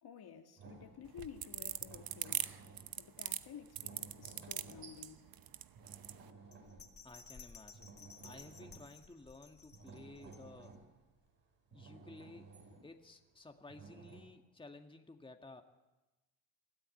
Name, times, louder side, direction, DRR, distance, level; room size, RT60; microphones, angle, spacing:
voice 1, 0.0-2.5 3.0-5.2, left 8 dB, 50° left, 2.1 m, -53 dB
sound 1, 0.6-7.4 7.6-9.2 9.5-11.3 11.7-13.0 13.7-14.2, right 4 dB, 65° right, 6.5 m, -56 dB
sound 2, 1.1-6.2, right 11 dB, 50° right, 1.0 m, -40 dB
Bell, 6.5-10.8 11.3-11.4, left 5 dB, 30° left, 2.3 m, -57 dB
voice 2, 7.0-7.9 8.2-10.7 11.7-12.5 12.8-15.6, left 2 dB, 10° left, 1.8 m, -54 dB
21.5 x 13.5 x 9.1 m
supercardioid pair, 65°, 47 cm